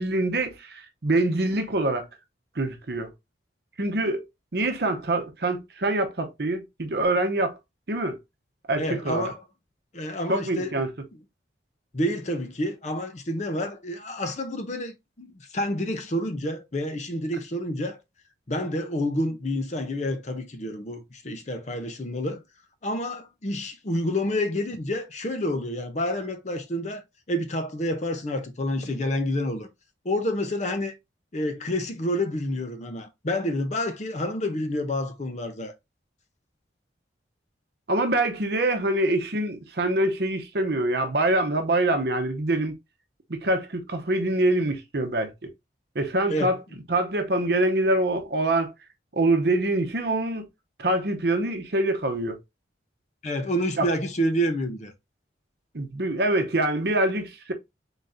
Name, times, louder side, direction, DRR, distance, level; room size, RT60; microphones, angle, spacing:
voice 1, 0.0-2.1 2.5-3.1 3.8-4.3 4.5-7.6 7.9-8.2 8.7-9.3 10.3-10.9 37.9-42.7 43.4-45.3 45.9-46.6 46.9-48.7 49.1-50.5 50.8-52.4 53.8-53.9 55.7-57.5, right 2 dB, 60° right, 0.8 m, -25 dB
voice 2, 8.8-9.4 9.9-10.7 11.9-18.0 18.5-22.4 22.8-27.0 27.3-29.7 30.0-30.9 31.3-35.7 46.3-46.5 53.2-54.9, left 1 dB, 40° left, 0.6 m, -28 dB
3.9 x 3.6 x 2.6 m
head